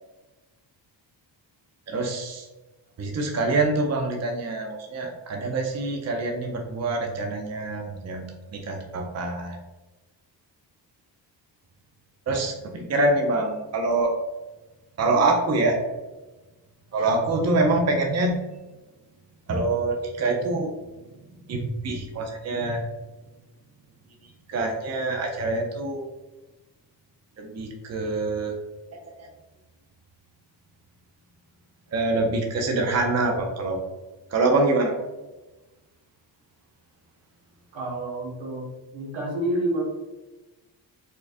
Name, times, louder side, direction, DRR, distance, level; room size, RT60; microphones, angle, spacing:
voice 1, 1.9-2.5 3.0-8.3 8.5-9.6 12.3-14.1 15.0-15.8 16.9-18.4 19.5-20.7 21.5-22.8 24.5-26.1 27.4-28.5 28.9-29.3 31.9-33.8 34.3-34.9, right 2 dB, 35° right, 1 dB, 0.6 m, -25 dB
voice 2, 37.7-38.7 38.9-39.8, right 1 dB, 80° right, -2 dB, 1.2 m, -28 dB
4.4 x 2.3 x 2.6 m, 1.1 s
cardioid pair, 75°, 47 cm